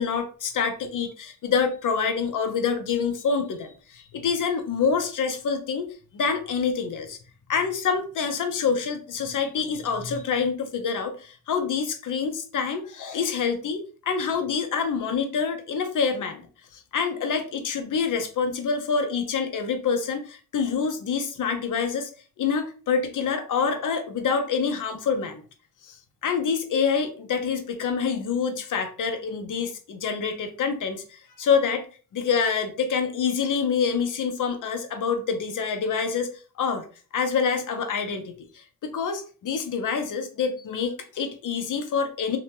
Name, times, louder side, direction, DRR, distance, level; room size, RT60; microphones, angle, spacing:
voice 1, 0.0-7.2 7.5-22.1 22.4-25.4 25.8-26.0 26.2-31.9 32.1-36.3 36.6-36.9 37.1-38.5 38.8-42.4, left 6 dB, 60° left, 7 dB, 0.7 m, -26 dB
2.8 x 2.2 x 2.8 m, 0.38 s
cardioid pair, 80°, 35 cm